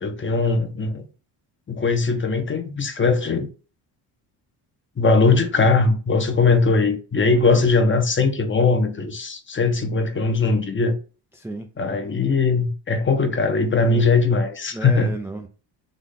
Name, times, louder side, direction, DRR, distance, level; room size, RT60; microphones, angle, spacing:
voice 1, 0.0-1.0 1.7-3.5 5.0-11.0 11.8-15.1, left 4 dB, 25° left, 0.8 m, -20 dB
voice 2, 7.3-7.7 11.3-11.7 13.8-14.1 14.7-15.5, right 1 dB, 5° right, 0.4 m, -33 dB
3.9 x 3.0 x 3.7 m
cardioid pair, 90°, 47 cm